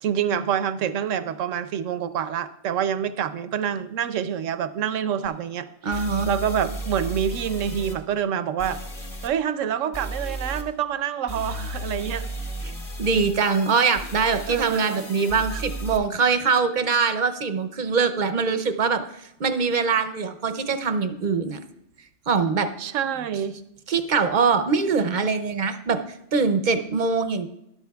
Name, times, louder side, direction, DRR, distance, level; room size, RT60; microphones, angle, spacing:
voice 1, 0.0-8.8 9.2-12.3 14.5-15.0 15.5-15.6 22.8-23.6, right 9 dB, 85° right, 12 dB, 1.0 m, -27 dB
sound 1, 5.2-5.3 5.9-8.0 8.6-9.3 9.9-10.6 11.3-16.0, right 1 dB, 30° left, 1.3 m, -34 dB
voice 2, 5.8-6.3 13.0-19.0 19.4-21.6 22.3-22.7 23.9-26.0 26.3-27.5, right 5 dB, 50° right, 9 dB, 0.6 m, -23 dB
13.0 x 11.5 x 2.3 m, 0.80 s
omnidirectional pair, 1.3 m